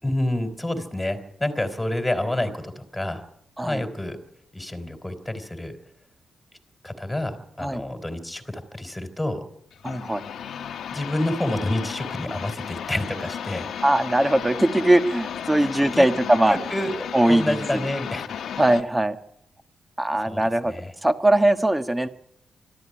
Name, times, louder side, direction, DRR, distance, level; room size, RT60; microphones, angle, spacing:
voice 1, 0.0-3.2 3.6-4.2 4.5-5.8 6.8-9.4 10.9-13.7 15.6-16.1 16.5-18.4 20.2-20.9, left 1 dB, 10° left, 8 dB, 3.5 m, -28 dB
sound 1, 9.7-18.8, left 8 dB, 85° left, 1.2 m, -34 dB
voice 2, 9.8-10.2 13.8-16.6 17.1-17.6 18.6-19.2 20.0-20.7 21.0-22.1, right 1 dB, 10° right, 8 dB, 1.5 m, -20 dB
24.5 x 13.5 x 10.0 m, 0.75 s
cardioid pair, 120°, 0 cm